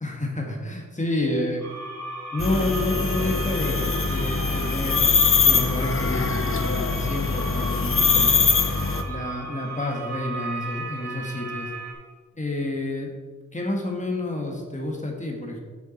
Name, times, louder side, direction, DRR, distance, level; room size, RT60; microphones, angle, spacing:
voice 1, 0.0-1.6 2.3-8.4 9.1-11.7 12.3-13.1 13.5-15.6, left 1 dB, 25° left, 0 dB, 1.5 m, -29 dB
sound 1, 1.6-11.9, right 3 dB, 60° right, 1.5 m, -35 dB
sound 2, 2.4-9.0, left 5 dB, 45° left, 0.7 m, -22 dB
7.0 x 6.8 x 4.4 m, 1.5 s
wide cardioid pair, 110°, 31 cm